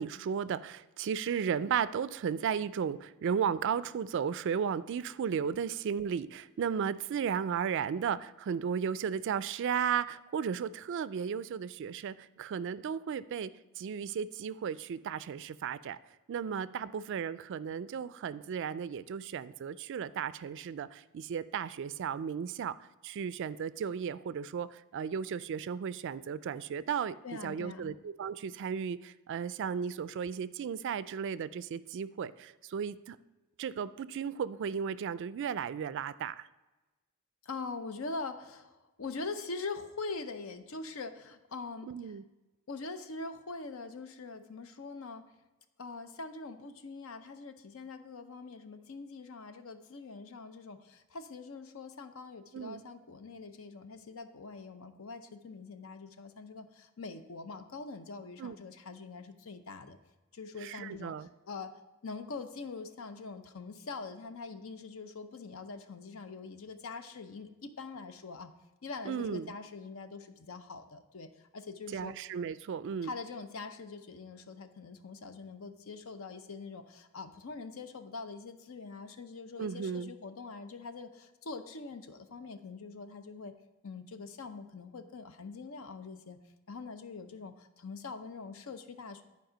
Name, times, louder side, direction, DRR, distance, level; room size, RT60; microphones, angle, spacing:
voice 1, 0.0-13.5 13.8-16.0 16.3-22.8 23.0-27.2 27.4-33.2 33.6-36.5 41.9-42.2 52.5-52.8 58.4-58.6 60.6-61.3 69.1-69.5 71.9-73.1 79.6-80.1, right 7 dB, 60° right, 16 dB, 0.3 m, -35 dB
voice 2, 27.2-28.0 37.4-42.2 42.7-45.3 45.8-60.0 60.3-61.7 62.0-68.5 68.8-72.1 73.0-83.5 83.8-89.2, left 4 dB, 70° left, 9 dB, 0.7 m, -43 dB
10.5 x 4.8 x 5.0 m, 1.1 s
head